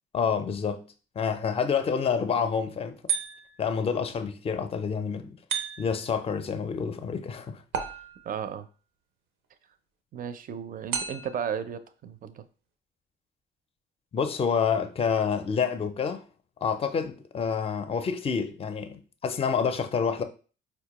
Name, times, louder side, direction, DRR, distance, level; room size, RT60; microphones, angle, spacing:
voice 1, 0.1-0.8 1.2-3.0 3.6-5.3 5.8-7.6 14.1-16.2 16.6-20.2, left 6 dB, 30° left, 0.4 m, -28 dB
sound 1, 3.1-3.7 5.5-6.1 7.7-8.5 10.9-11.5, right 7 dB, 90° right, 0.6 m, -33 dB
voice 2, 8.3-8.7 10.1-12.4, right 8 dB, 45° right, 0.4 m, -34 dB
4.3 x 2.2 x 2.9 m
cardioid pair, 90°, 20 cm